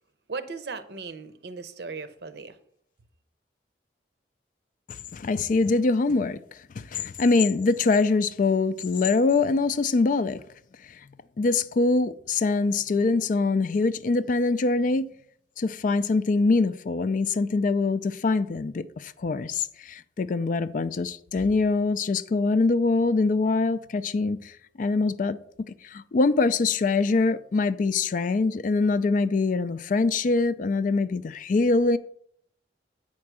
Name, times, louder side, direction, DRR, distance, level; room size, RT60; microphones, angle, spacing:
voice 1, 0.3-2.6, right 4 dB, 65° right, 0.7 m, -37 dB
voice 2, 4.9-6.4 6.8-10.4 10.9-11.0 11.4-15.1 15.6-32.0, left 3 dB, 45° left, 0.4 m, -24 dB
8.5 x 4.5 x 6.0 m
head